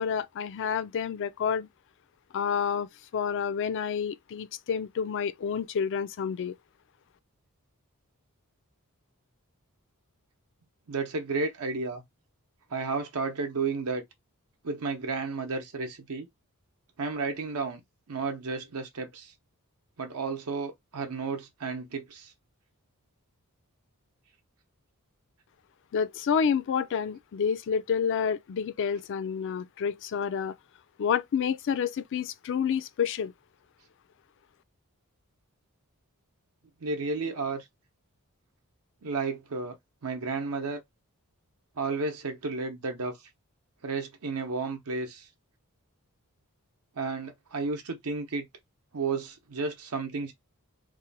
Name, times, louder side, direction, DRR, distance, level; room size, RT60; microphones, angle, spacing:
voice 1, 0.0-1.7 2.3-2.9 3.1-6.5 25.9-30.5 31.0-33.3, left 7 dB, 55° left, 0.4 m, -29 dB
voice 2, 10.9-12.0 12.7-14.0 14.6-16.3 17.0-17.8 18.1-19.3 20.0-22.3 36.8-37.6 39.0-39.7 40.0-40.8 41.8-43.2 43.8-45.3 47.0-48.4 48.9-50.3, right 4 dB, 75° right, 0.7 m, -32 dB
2.7 x 2.1 x 3.9 m
head